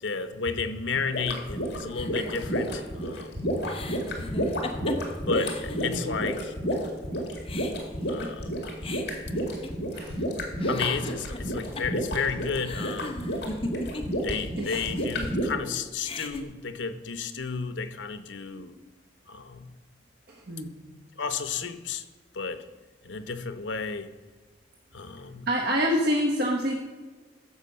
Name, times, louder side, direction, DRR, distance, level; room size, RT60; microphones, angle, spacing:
voice 1, 0.0-3.3 5.2-6.5 8.1-8.5 10.7-13.2 14.2-18.7 19.3-19.7 21.2-22.0 22.3-22.6 23.0-24.1 24.9-25.5, left 5 dB, 85° left, 11 dB, 0.8 m, -32 dB
sound 1, 1.1-15.4, equal, 65° left, 2.2 m, -30 dB
sound 2, 1.9-6.4 6.7-6.8 7.1-10.2 10.5-14.3 14.5-15.7 16.0-16.4, left 2 dB, 30° left, 0.9 m, -39 dB
voice 2, 5.8-6.2 9.9-10.2 10.6-10.7 20.5-20.8 25.5-26.7, equal, 60° right, 0 dB, 1.1 m, -26 dB
14.0 x 5.1 x 6.6 m, 1.3 s
head